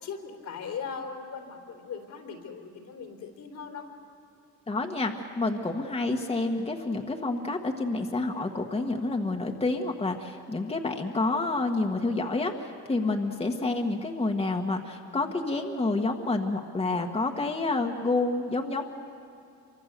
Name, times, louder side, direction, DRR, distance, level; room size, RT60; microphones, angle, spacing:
voice 1, 0.0-3.9, left 6 dB, 70° left, 3 dB, 3.6 m, -39 dB
voice 2, 4.7-18.8, left 2 dB, 20° left, 2 dB, 1.6 m, -29 dB
27.0 x 24.5 x 6.8 m, 2.6 s
cardioid pair, 90°, 30 cm